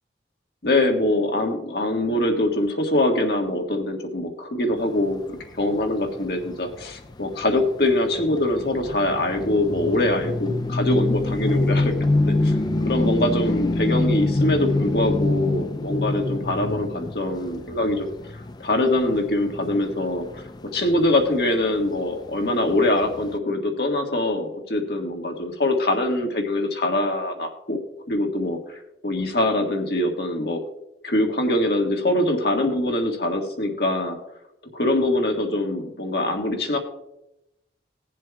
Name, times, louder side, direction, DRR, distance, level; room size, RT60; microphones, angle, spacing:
voice 1, 0.6-12.6 12.8-20.4 20.7-27.8 28.1-28.6 29.0-30.6 31.0-34.2 34.7-36.8, left 1 dB, 65° left, 3 dB, 1.6 m, -23 dB
sound 1, 5.0-23.4, left 2 dB, 25° left, 0.3 m, -26 dB
21.0 x 7.5 x 2.3 m, 0.87 s
head